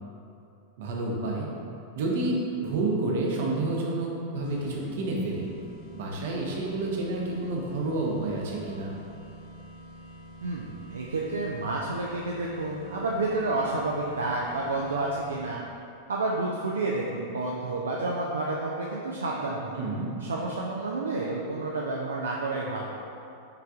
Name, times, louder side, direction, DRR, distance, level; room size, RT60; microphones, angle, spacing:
voice 1, 0.8-1.5 1.9-5.5 5.9-8.9 19.8-20.1, right 2 dB, 55° right, -2 dB, 0.7 m, -29 dB
sound 1, 4.4-15.8, right 1 dB, 55° left, 0.9 m, -47 dB
voice 2, 10.4-15.6 16.1-19.7 20.2-23.0, right 2 dB, 70° right, -2 dB, 0.3 m, -30 dB
5.6 x 3.4 x 2.4 m, 2.6 s
figure-of-eight pair, 90°, 0 cm